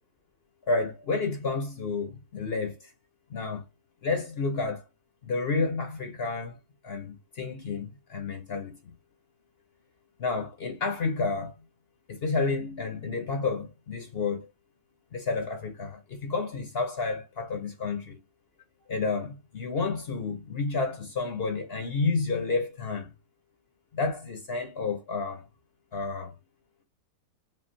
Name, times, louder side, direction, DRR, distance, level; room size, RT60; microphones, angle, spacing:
voice 1, 0.7-2.9 3.3-3.6 4.0-4.8 5.2-6.6 6.8-8.9 10.2-11.5 12.1-14.5 15.1-18.2 18.9-23.1 23.9-25.5 25.9-26.3, left 4 dB, 60° left, 0.6 m, -30 dB
5.6 x 2.5 x 2.6 m
omnidirectional pair, 1.9 m